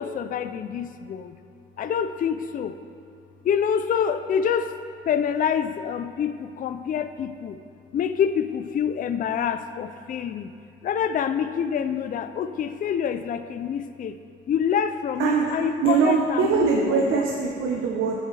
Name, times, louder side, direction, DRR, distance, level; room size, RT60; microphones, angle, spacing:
voice 1, 0.0-1.4 1.8-2.8 3.4-4.7 5.1-7.6 7.9-10.5 10.8-14.2 14.5-16.7 17.1-17.2, left 8 dB, 45° left, 10 dB, 0.4 m, -26 dB
voice 2, 15.2-15.5 15.8-18.2, right 5 dB, 85° right, -1 dB, 0.9 m, -22 dB
11.0 x 8.4 x 3.3 m, 2.4 s
cardioid pair, 90°, 20 cm